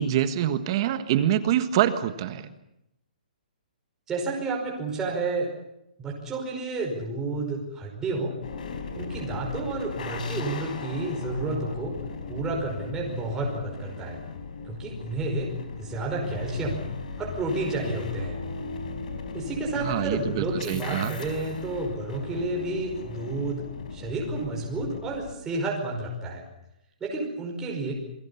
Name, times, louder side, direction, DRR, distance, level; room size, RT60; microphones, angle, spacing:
voice 1, 0.0-2.5 19.8-21.1, right 11 dB, 35° right, 10 dB, 1.6 m, -25 dB
voice 2, 4.1-5.5 6.0-8.3 8.9-11.9 12.3-14.2 14.6-15.5 15.8-16.8 17.2-18.4 19.3-26.4 27.0-27.9, right 2 dB, 10° right, -2 dB, 5.3 m, -30 dB
sound 1, 8.4-25.3, left 4 dB, 60° left, 4.7 m, -37 dB
28.5 x 21.5 x 7.1 m, 0.84 s
hypercardioid pair, 165°, 5 cm